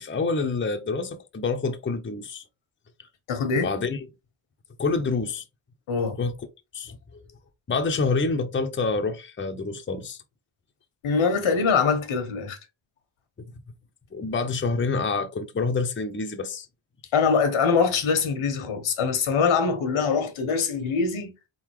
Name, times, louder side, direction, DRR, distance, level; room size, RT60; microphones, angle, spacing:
voice 1, 0.0-2.4 3.5-4.0 4.8-5.4 6.2-6.3 6.7-7.0 7.7-10.2 13.4-13.6 14.1-16.7, left 4 dB, 25° left, 0.8 m, -27 dB
voice 2, 3.3-3.7 5.9-6.2 11.0-12.6 17.1-21.3, left 5 dB, 75° left, 1.4 m, -23 dB
4.0 x 3.8 x 3.1 m
cardioid pair, 70°, 49 cm